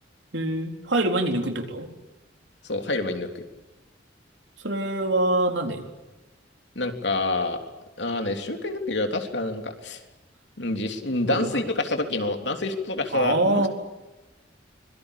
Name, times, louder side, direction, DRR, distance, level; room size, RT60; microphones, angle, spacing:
voice 1, 0.3-1.9 4.6-5.8 11.3-11.5 13.1-13.7, right 2 dB, 85° right, 4 dB, 4.0 m, -24 dB
voice 2, 2.6-3.4 6.8-7.6 8.0-10.0 10.6-13.7, left 2 dB, 70° left, 5 dB, 3.4 m, -27 dB
25.0 x 23.5 x 8.5 m, 1.1 s
head